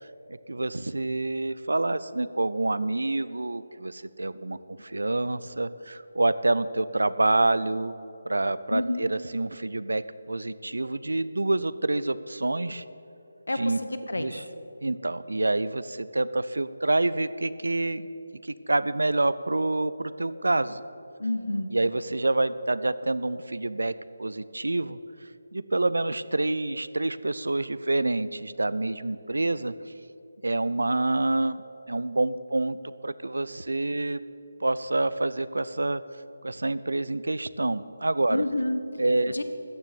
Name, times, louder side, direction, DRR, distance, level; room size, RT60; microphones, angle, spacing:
voice 1, 0.0-7.9 8.3-12.8 13.6-13.8 14.1-14.4 14.8-18.1 18.4-20.8 21.7-25.0 25.5-29.7 30.4-32.8 33.0-34.2 34.6-36.0 36.4-38.4 39.0-39.3, right 2 dB, 75° right, 16 dB, 0.5 m, -27 dB
voice 2, 8.7-9.1 13.5-14.3 21.2-21.7 38.3-38.8 39.3-39.4, left 2 dB, 75° left, 9 dB, 1.2 m, -29 dB
14.0 x 6.7 x 9.5 m, 3.0 s
figure-of-eight pair, 155°, 0 cm